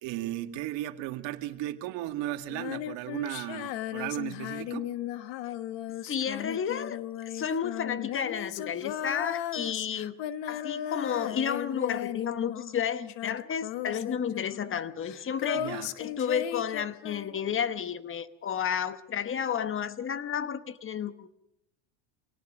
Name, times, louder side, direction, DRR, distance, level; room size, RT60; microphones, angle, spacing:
voice 1, 0.0-4.9 15.5-15.9, right 14 dB, 65° right, 2.1 m, -35 dB
Female singing, 2.5-12.8 13.1-17.5, left 11 dB, 60° left, 1.4 m, -36 dB
voice 2, 6.1-7.0 7.3-10.2 10.5-21.3, left 8 dB, 25° left, 1.2 m, -32 dB
26.0 x 18.5 x 6.3 m
supercardioid pair, 120°, 48 cm